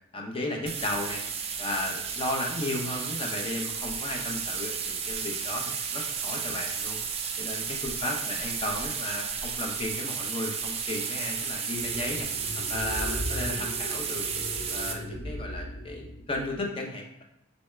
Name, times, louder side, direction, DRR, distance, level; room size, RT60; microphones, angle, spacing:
voice 1, 0.1-1.2 1.6-7.0 7.4-12.3 12.7-14.3 14.7-17.2, left 1 dB, 25° left, 1 dB, 0.6 m, -34 dB
sound 1, 0.7-14.9, right 6 dB, 30° right, 0.3 m, -33 dB
sound 2, 11.7-16.6, left 1 dB, 65° left, 0.7 m, -38 dB
4.1 x 3.4 x 3.2 m, 0.80 s
head